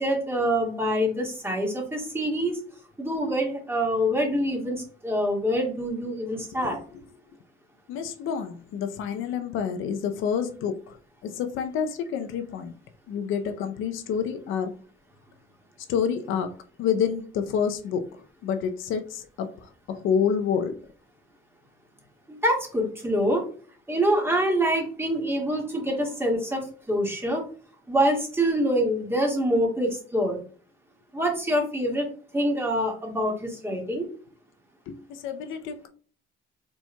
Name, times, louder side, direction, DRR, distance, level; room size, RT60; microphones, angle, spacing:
voice 1, 0.0-2.6 3.0-6.8 22.3-23.4 23.9-27.4 27.9-30.4 31.1-32.1 32.3-34.1, equal, 10° right, 1.8 m, -25 dB
voice 2, 7.9-11.0 11.2-12.7 13.1-14.7 15.9-18.0 18.4-20.8 34.9-35.9, left 7 dB, 90° left, 0.6 m, -28 dB
4.5 x 4.2 x 2.2 m
cardioid pair, 90°, 20 cm